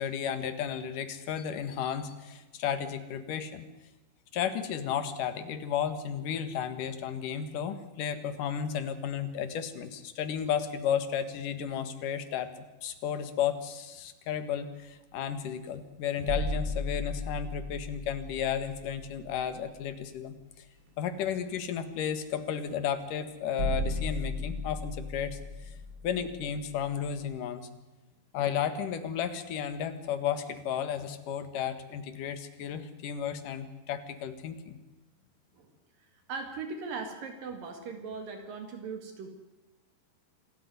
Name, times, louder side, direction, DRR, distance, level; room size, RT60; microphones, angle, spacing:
voice 1, 0.0-3.6 4.3-20.3 21.0-25.8 26.0-27.7 28.3-34.8, left 8 dB, 60° left, 10 dB, 3.0 m, -33 dB
sound 1, 16.3-19.8 20.1-20.2 23.6-27.2, left 1 dB, 35° right, 4.0 m, -35 dB
voice 2, 36.0-39.3, right 4 dB, 65° right, 6 dB, 3.6 m, -39 dB
27.0 x 13.5 x 9.5 m, 1.1 s
omnidirectional pair, 4.5 m